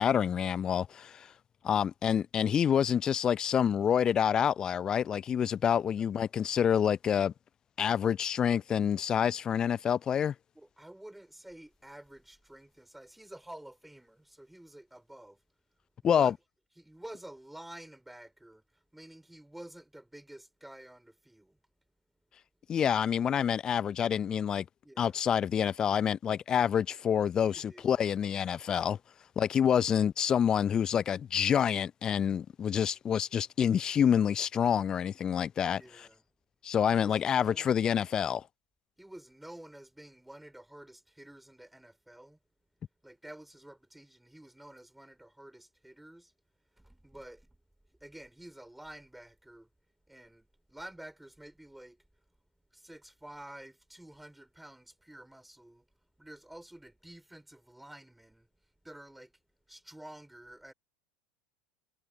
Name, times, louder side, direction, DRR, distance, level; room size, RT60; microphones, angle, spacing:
voice 1, 0.0-1.3 1.6-7.3 7.8-10.3 16.0-16.3 22.7-24.7 25.0-29.0 29.4-35.8 36.6-38.4, left 8 dB, 30° left, 0.5 m, -27 dB
voice 2, 10.5-15.4 16.0-16.3 16.8-21.6 24.8-25.2 27.5-28.0 35.6-36.2 36.9-37.9 39.0-42.4 43.0-46.3 46.7-47.6 47.9-49.7 50.1-52.1 52.7-55.9 56.2-58.5 58.8-59.4 59.7-60.7, right 1 dB, 5° right, 3.3 m, -50 dB
figure-of-eight pair, 80°, 2 cm